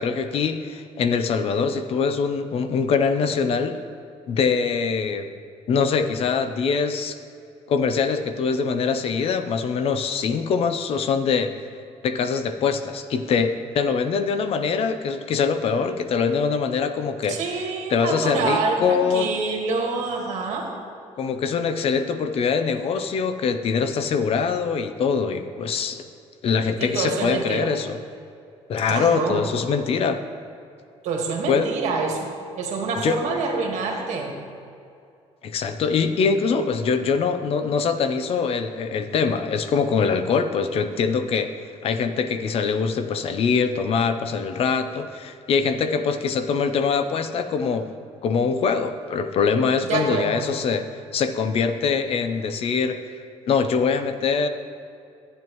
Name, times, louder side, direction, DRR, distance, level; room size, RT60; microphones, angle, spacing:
voice 1, 0.0-3.8 4.3-5.3 5.7-7.2 7.7-11.5 12.0-19.3 21.2-26.0 26.4-28.0 28.7-30.2 31.5-31.7 32.9-33.2 35.4-41.5 41.8-47.9 48.2-53.0 53.5-54.5, left 5 dB, 55° left, 9 dB, 0.6 m, -23 dB
voice 2, 17.3-20.7 26.8-27.7 28.9-29.4 31.0-32.3 32.6-34.3 49.9-50.4, right 4 dB, 75° right, 1 dB, 1.6 m, -26 dB
12.0 x 8.9 x 3.1 m, 2.5 s
cardioid pair, 120°, 12 cm